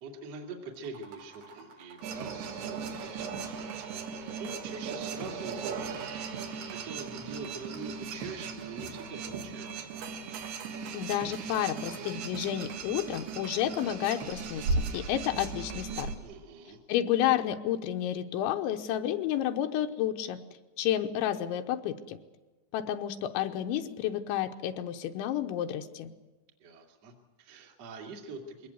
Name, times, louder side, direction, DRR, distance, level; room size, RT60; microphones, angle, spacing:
voice 1, 0.0-3.9 4.1-6.2 6.4-9.9 16.2-16.8 26.6-28.7, right 4 dB, 45° right, 1 dB, 2.6 m, -44 dB
sound 1, 0.7-9.4, right 4 dB, 80° right, 7.0 m, -56 dB
sound 2, 2.0-16.2, right 4 dB, 65° right, 3.6 m, -37 dB
voice 2, 10.9-14.6 14.9-16.1 16.9-20.4 20.8-22.2 22.7-26.1, left 11 dB, 90° left, 6 dB, 3.3 m, -30 dB
22.5 x 18.0 x 8.1 m, 1.2 s
omnidirectional pair, 5.3 m